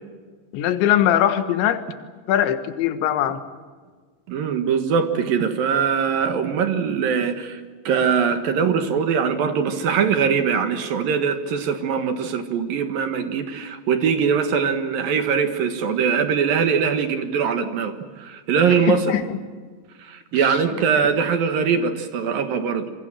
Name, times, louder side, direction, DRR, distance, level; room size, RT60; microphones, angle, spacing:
voice 1, 0.5-1.8 2.3-3.4 18.7-19.4, left 11 dB, 85° left, 3.7 m, -21 dB
voice 2, 4.3-19.2 20.0-22.9, right 6 dB, 60° right, 2.9 m, -22 dB
27.5 x 24.5 x 7.6 m
omnidirectional pair, 5.1 m